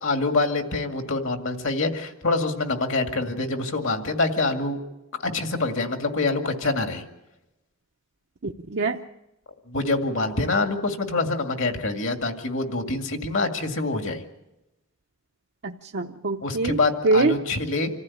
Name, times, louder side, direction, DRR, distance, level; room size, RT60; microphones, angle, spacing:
voice 1, 0.0-4.8 5.2-7.0 9.7-14.2 16.4-17.9, left 3 dB, 60° left, 6 dB, 2.2 m, -25 dB
voice 2, 8.4-9.0 15.6-16.8 17.0-17.3, right 3 dB, 50° right, 2 dB, 0.7 m, -24 dB
26.5 x 15.0 x 8.5 m, 0.97 s
head